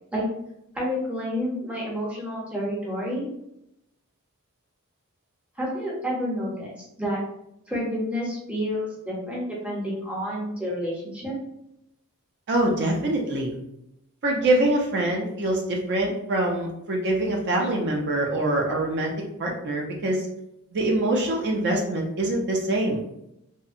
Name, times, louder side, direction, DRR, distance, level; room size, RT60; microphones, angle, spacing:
voice 1, 0.7-3.3 5.6-7.2 7.7-11.3, equal, 5° right, -4 dB, 0.6 m, -29 dB
voice 2, 12.5-13.5 14.2-19.1 19.4-20.3 20.7-23.0, right 1 dB, 50° right, 0 dB, 0.4 m, -24 dB
2.6 x 2.0 x 2.5 m, 0.81 s
head